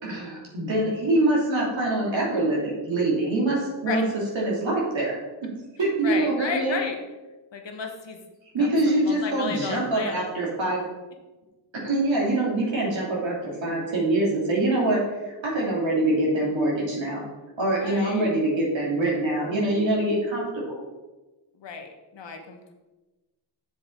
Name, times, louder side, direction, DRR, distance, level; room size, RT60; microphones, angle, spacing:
voice 1, 0.0-4.0 4.3-5.1 5.8-6.8 8.5-10.8 11.8-15.0 15.4-17.2 17.6-20.9, right 2 dB, 75° right, -4 dB, 2.8 m, -24 dB
voice 2, 6.0-7.0 7.5-8.2 8.6-10.2 17.8-18.2 21.6-22.7, left 5 dB, 70° left, 4 dB, 1.4 m, -33 dB
7.2 x 7.0 x 4.6 m, 1.1 s
cardioid pair, 70°, 46 cm